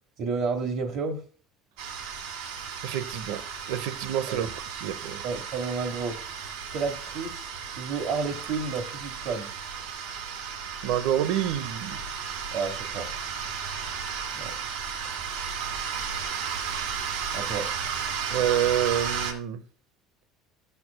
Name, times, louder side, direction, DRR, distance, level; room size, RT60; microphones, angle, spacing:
voice 1, 0.2-1.2 4.3-4.5 5.2-6.2 6.7-9.5 12.5-13.1 14.3-14.5 17.3-17.7, right 4 dB, 45° right, 1.1 m, -31 dB
sound 1, 1.8-19.3, right 7 dB, 85° right, 1.6 m, -34 dB
voice 2, 2.8-3.4 3.7-4.5 4.8-5.2 10.8-12.0 18.3-19.6, right 10 dB, 70° right, 0.7 m, -27 dB
13.5 x 6.7 x 2.2 m
cardioid pair, 180°, 0 cm